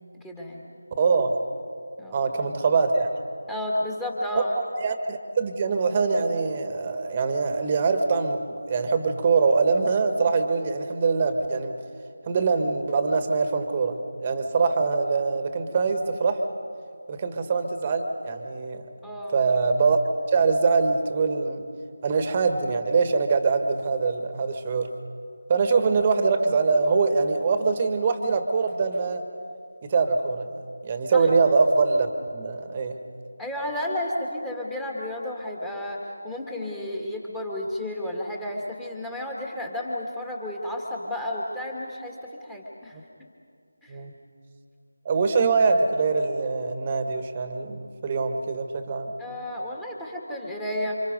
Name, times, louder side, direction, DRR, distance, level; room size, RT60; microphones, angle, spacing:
voice 1, 0.1-0.6 2.0-2.2 3.5-4.5 19.0-19.4 31.1-31.3 33.4-43.0 43.8-44.0 49.2-51.0, left 1 dB, 5° left, -2 dB, 2.0 m, -32 dB
voice 2, 1.0-1.4 2.1-3.1 4.8-11.7 12.2-16.4 17.1-18.8 19.3-20.0 20.3-21.6 22.0-24.9 25.5-29.2 29.8-33.0 43.9-44.1 45.0-49.1, right 4 dB, 25° right, 7 dB, 1.7 m, -23 dB
29.5 x 26.0 x 5.4 m, 2.3 s
figure-of-eight pair, 160°, 0 cm